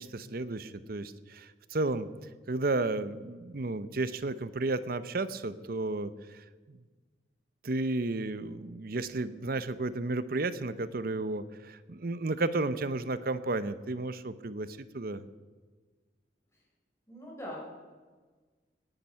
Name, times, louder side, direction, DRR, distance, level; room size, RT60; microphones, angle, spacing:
voice 1, 0.0-2.1 2.5-6.8 7.6-15.2, right 2 dB, 55° right, 14 dB, 0.7 m, -33 dB
voice 2, 17.1-17.6, left 1 dB, 15° left, -3 dB, 5.0 m, -41 dB
18.0 x 10.5 x 5.7 m, 1.4 s
head